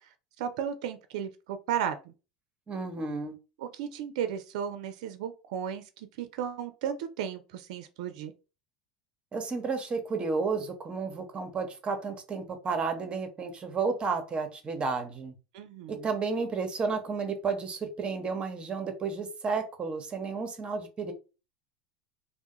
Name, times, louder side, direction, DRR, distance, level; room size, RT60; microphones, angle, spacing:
voice 1, 0.4-2.1 3.6-8.3 15.5-16.1, right 9 dB, 70° right, 0.4 m, -34 dB
voice 2, 2.7-3.3 9.3-15.3 15.9-21.1, right 4 dB, 30° right, 0.8 m, -32 dB
2.2 x 2.0 x 2.8 m
hypercardioid pair, 85°, 4 cm